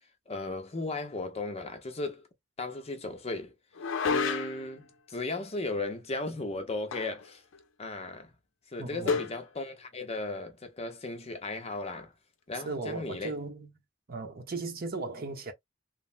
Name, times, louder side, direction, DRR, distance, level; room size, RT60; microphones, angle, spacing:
voice 1, 0.3-2.3 2.6-3.5 4.1-7.4 7.8-8.3 8.7-12.1 12.5-13.3, left 2 dB, 30° left, 0.7 m, -36 dB
sound 1, 3.8-4.7 6.9-7.3 7.5-7.6 9.1-9.4, left 5 dB, 70° left, 0.5 m, -30 dB
voice 2, 8.8-9.2 12.5-13.7 14.1-15.5, right 3 dB, 50° right, 0.7 m, -36 dB
3.3 x 2.0 x 2.4 m
head